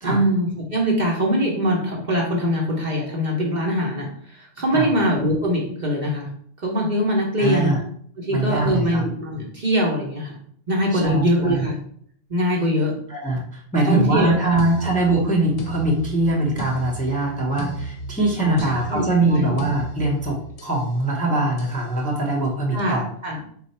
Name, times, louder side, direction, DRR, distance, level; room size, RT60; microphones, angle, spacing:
voice 1, 0.0-6.3 6.6-7.7 8.2-10.4 10.7-11.7 12.3-12.9 13.9-14.6 18.4-19.6 22.7-23.4, equal, 45° right, -2 dB, 0.8 m, -23 dB
voice 2, 7.4-7.8 8.3-9.0 10.9-11.6 13.1-23.1, right 2 dB, 10° left, -3 dB, 0.7 m, -22 dB
sound 1, 14.6-20.9 21.6-21.9, right 2 dB, 60° left, 0.9 m, -34 dB
4.0 x 2.3 x 4.2 m, 0.63 s
omnidirectional pair, 1.2 m